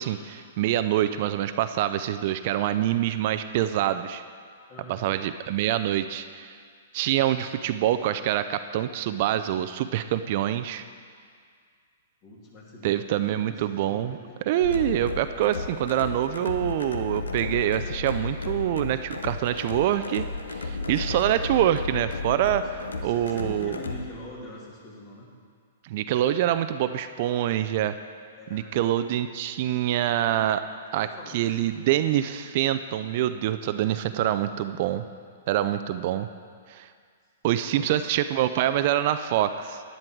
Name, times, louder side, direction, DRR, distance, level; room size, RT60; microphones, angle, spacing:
voice 1, 0.0-4.2 4.9-6.5 6.9-10.8 12.8-14.2 14.5-20.3 20.6-23.8 25.8-27.9 28.5-30.6 30.9-31.1 31.3-35.0 35.5-36.3 36.7-36.9 37.4-39.8, right 12 dB, 50° right, 11 dB, 0.4 m, -25 dB
voice 2, 4.7-5.1 12.2-14.4 23.0-25.3 28.3-28.8 30.9-31.9 37.6-38.2, left 1 dB, 35° left, -3 dB, 2.9 m, -44 dB
sound 1, 14.6-24.0, left 3 dB, 90° left, 0.8 m, -33 dB
11.0 x 10.0 x 4.6 m, 2.1 s
hypercardioid pair, 120°, 0 cm